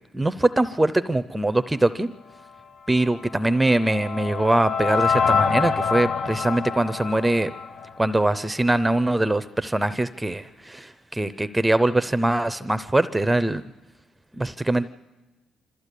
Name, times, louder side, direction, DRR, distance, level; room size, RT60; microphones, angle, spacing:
voice 1, 0.1-2.1 2.9-7.5 8.0-13.6 14.4-14.9, right 1 dB, 10° right, 13 dB, 0.6 m, -22 dB
sound 1, 3.2-8.4, left 6 dB, 60° left, 0.7 m, -26 dB
26.0 x 14.0 x 8.3 m, 1.1 s
cardioid pair, 90°, 0 cm